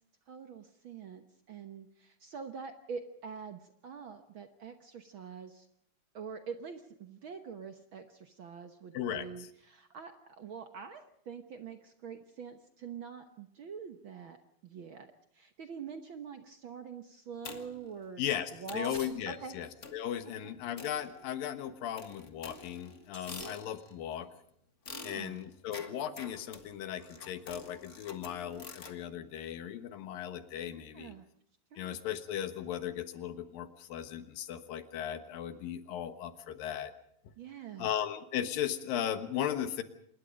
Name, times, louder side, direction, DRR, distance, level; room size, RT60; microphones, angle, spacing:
voice 1, 0.3-5.7 6.1-18.2 18.5-19.5 20.4-20.5 23.4-23.5 24.9-25.4 30.9-31.3 31.7-32.0 37.4-37.9, right 6 dB, 75° right, 7 dB, 1.2 m, -45 dB
voice 2, 8.9-9.5 18.2-24.3 25.0-31.1 31.8-36.9 37.8-39.8, left 10 dB, 80° left, 10 dB, 3.0 m, -37 dB
sound 1, 17.4-17.9 18.3-18.4 18.7-19.0 19.8-20.1 20.8-21.5 22.0-24.0 24.9-29.0, left 4 dB, 45° left, 1.0 m, -48 dB
sound 2, 18.8-19.7 23.1-24.1, left 1 dB, 10° left, 1.6 m, -50 dB
26.5 x 21.0 x 5.2 m, 0.68 s
omnidirectional pair, 4.0 m